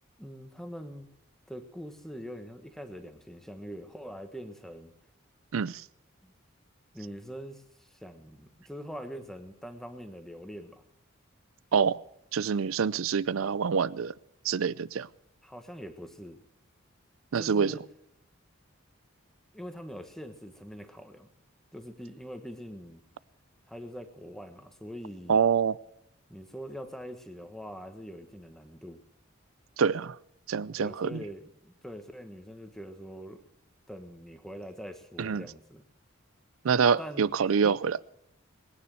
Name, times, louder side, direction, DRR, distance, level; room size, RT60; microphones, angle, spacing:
voice 1, 0.2-1.1 1.5-4.9 6.2-6.3 6.9-10.8 15.4-16.4 17.3-17.8 19.5-21.3 21.7-23.0 23.7-25.4 26.3-29.0 30.8-33.4 33.9-35.8 37.0-37.3 37.6-37.8, equal, ahead, 7 dB, 1.3 m, -43 dB
voice 2, 5.5-5.8 11.7-12.0 12.3-14.1 14.4-15.1 17.3-17.8 25.3-25.8 29.8-30.2 30.5-31.2 35.2-35.4 36.6-38.0, right 6 dB, 85° right, 21 dB, 0.5 m, -26 dB
20.5 x 9.7 x 6.4 m, 0.77 s
head